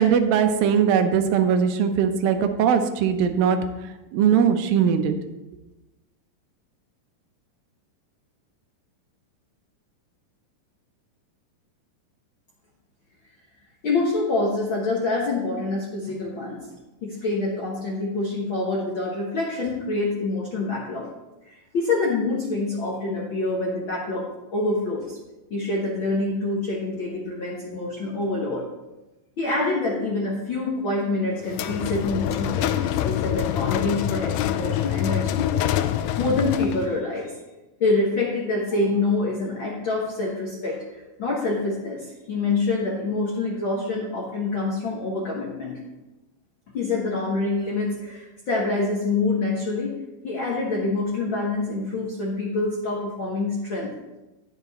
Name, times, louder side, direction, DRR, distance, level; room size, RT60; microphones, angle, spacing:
voice 1, 0.0-3.6 4.1-5.1, right 7 dB, 90° right, 7 dB, 2.6 m, -20 dB
voice 2, 13.8-16.6 17.0-21.1 21.5-24.2 24.5-25.2 25.5-28.6 29.4-35.5 35.9-37.3 37.8-45.8 46.7-50.0 50.2-53.9, left 3 dB, 55° left, -5 dB, 1.4 m, -26 dB
sound 1, 31.5-37.0, left 11 dB, 80° left, 1.9 m, -25 dB
10.5 x 6.9 x 4.2 m, 1.0 s
omnidirectional pair, 4.0 m